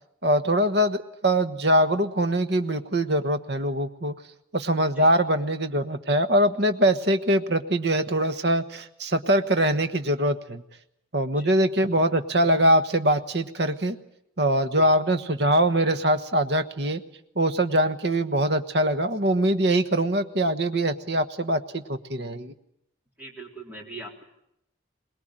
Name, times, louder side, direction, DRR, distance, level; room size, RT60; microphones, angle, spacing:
voice 1, 0.2-4.1 4.5-10.6 11.1-14.0 14.4-17.0 17.4-22.5, right 1 dB, 55° right, 9 dB, 1.3 m, -23 dB
voice 2, 23.2-24.2, right 3 dB, 10° right, -1 dB, 3.7 m, -40 dB
22.5 x 20.5 x 8.9 m, 0.79 s
head